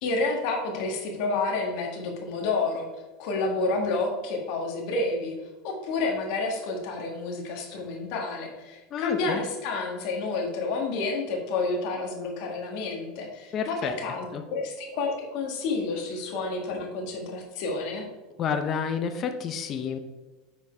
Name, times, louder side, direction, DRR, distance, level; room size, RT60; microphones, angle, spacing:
voice 1, 0.0-2.9 3.2-5.3 5.6-18.1, left 3 dB, 60° left, 0 dB, 1.5 m, -29 dB
voice 2, 8.9-9.4 13.5-13.9 14.3-14.4 18.4-20.0, left 6 dB, 35° left, 7 dB, 0.5 m, -29 dB
6.0 x 4.5 x 4.4 m, 1.2 s
supercardioid pair, 130°, 0 cm